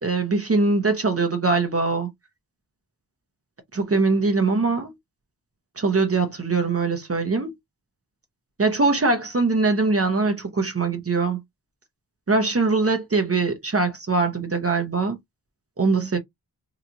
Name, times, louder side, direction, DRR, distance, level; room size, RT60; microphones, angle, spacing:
voice 1, 0.0-2.1 3.7-4.9 5.8-7.5 8.6-11.4 12.3-15.2 15.8-16.2, right 3 dB, 35° right, 0.8 m, -22 dB
3.0 x 2.4 x 3.8 m
wide cardioid pair, 95°, 39 cm